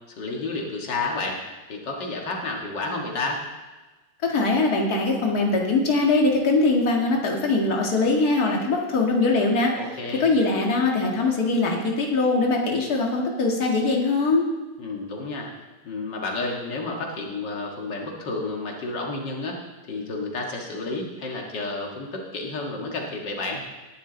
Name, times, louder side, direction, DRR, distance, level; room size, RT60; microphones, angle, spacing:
voice 1, 0.2-1.4 1.7-3.4 9.8-10.3 14.8-15.5 15.8-19.6 19.9-23.6, left 3 dB, 85° left, 0 dB, 2.4 m, -30 dB
voice 2, 4.2-9.7 10.1-14.4, left 3 dB, 60° left, 0 dB, 2.5 m, -22 dB
19.5 x 11.5 x 4.0 m, 1.2 s
omnidirectional pair, 1.9 m